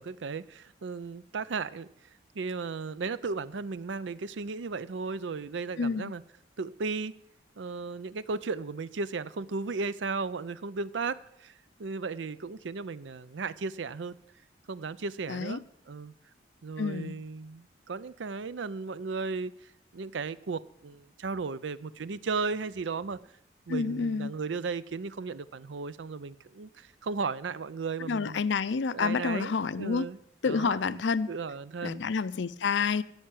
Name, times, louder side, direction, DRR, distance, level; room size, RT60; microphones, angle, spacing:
voice 1, 0.0-1.9 2.3-6.2 6.6-7.1 7.6-11.5 11.8-14.2 14.7-15.6 15.9-16.1 16.6-19.5 19.9-23.2 23.7-28.4 28.9-30.2 30.5-31.0 31.3-32.0, right 4 dB, 80° right, 0.5 m, -35 dB
voice 2, 5.8-6.1 15.3-15.6 16.8-17.2 23.7-24.3 28.1-30.1 30.4-31.3 31.8-33.0, left 5 dB, 75° left, 0.5 m, -29 dB
13.5 x 5.7 x 9.1 m
head